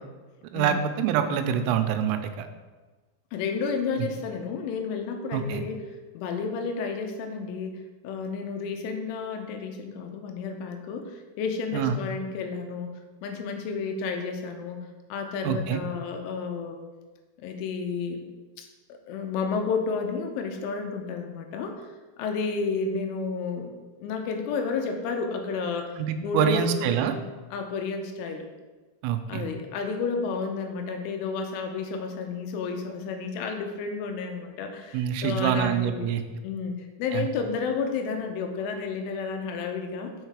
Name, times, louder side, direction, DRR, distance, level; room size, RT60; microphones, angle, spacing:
voice 1, 0.5-2.5 5.3-5.6 11.7-12.0 15.4-15.8 26.0-27.1 29.0-29.5 34.9-36.2 37.1-37.3, right 8 dB, 85° right, 8 dB, 3.2 m, -26 dB
voice 2, 3.3-5.8 6.1-12.9 13.2-14.8 15.1-16.8 17.4-18.2 18.6-21.8 22.2-26.0 26.2-27.0 27.5-28.5 29.3-36.1 36.4-36.7 37.0-40.1, left 5 dB, 85° left, 4 dB, 3.1 m, -31 dB
6.5 x 5.6 x 4.7 m, 1.3 s
omnidirectional pair, 5.7 m